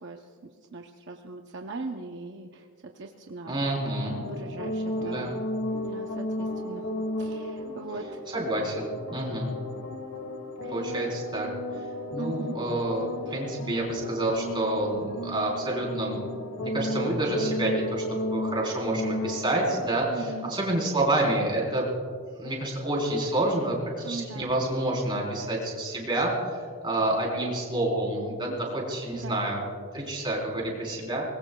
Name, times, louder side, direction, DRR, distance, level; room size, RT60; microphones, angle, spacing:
voice 1, 0.0-2.7 2.9-3.5 4.2-5.3 5.8-6.9 7.2-8.2 10.6-10.8 12.2-12.6 13.3-13.4 20.1-20.5 24.0-24.6 27.3-27.4 28.5-28.6 29.1-29.4, right 3 dB, 55° right, 3 dB, 0.7 m, -40 dB
voice 2, 3.5-4.2 5.0-5.4 8.3-9.5 10.7-11.5 11.7-11.8 12.1-16.2 16.6-21.8 22.4-31.2, right 1 dB, 20° right, -2 dB, 3.8 m, -28 dB
sound 1, 4.1-19.9, left 1 dB, 85° left, 1.4 m, -34 dB
24.0 x 20.5 x 2.3 m, 2.1 s
head